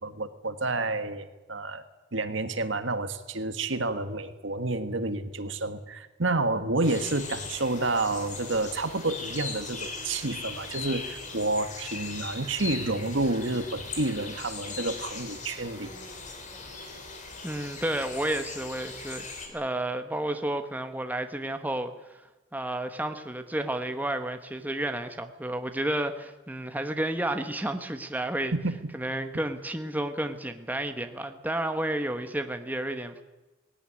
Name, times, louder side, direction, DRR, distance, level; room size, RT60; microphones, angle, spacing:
voice 1, 0.0-1.8 2.1-15.9 28.5-28.7, right 2 dB, 65° right, 10 dB, 1.7 m, -29 dB
sound 1, 6.8-19.5, left 4 dB, 40° left, 4.0 m, -39 dB
voice 2, 17.4-22.2 22.5-28.5 28.9-33.2, right 1 dB, 10° right, 7 dB, 1.2 m, -31 dB
19.5 x 17.0 x 10.0 m, 1.1 s
head